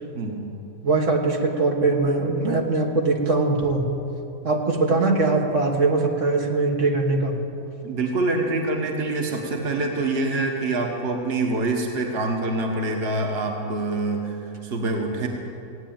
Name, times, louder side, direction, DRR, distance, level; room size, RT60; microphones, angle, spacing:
voice 1, 0.1-0.5 7.8-15.3, right 2 dB, 50° right, 2 dB, 1.6 m, -25 dB
voice 2, 0.8-3.9 4.4-7.4, right 3 dB, 65° right, 1 dB, 1.9 m, -21 dB
17.5 x 9.0 x 8.9 m, 2.7 s
omnidirectional pair, 1.4 m